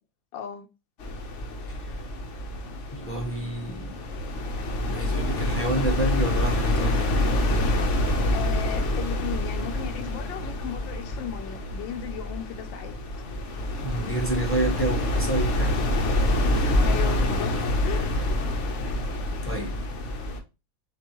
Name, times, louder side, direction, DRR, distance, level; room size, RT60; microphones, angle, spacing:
voice 1, 0.3-0.7 8.3-12.9 16.4-17.5 17.8-18.1, left 9 dB, 75° left, 1.3 m, -36 dB
sound 1, 1.0-20.4, left 1 dB, 55° left, 0.8 m, -26 dB
voice 2, 2.9-4.0 4.9-7.1 13.8-15.8 18.7-18.8 19.4-19.7, right 2 dB, 15° left, 0.6 m, -29 dB
6.8 x 2.4 x 3.0 m
omnidirectional pair, 2.1 m